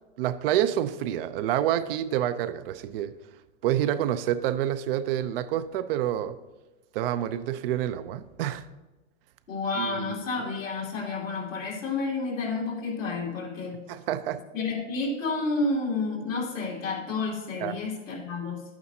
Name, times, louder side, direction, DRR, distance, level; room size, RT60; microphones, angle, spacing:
voice 1, 0.2-3.2 3.6-6.4 6.9-8.6 9.8-10.2 13.9-14.4 17.6-17.7, right 11 dB, 50° right, 0.5 m, -28 dB
voice 2, 9.5-13.8 14.5-18.6, left 3 dB, 85° left, 2.9 m, -30 dB
11.0 x 8.6 x 2.7 m
hypercardioid pair, 115°, 38 cm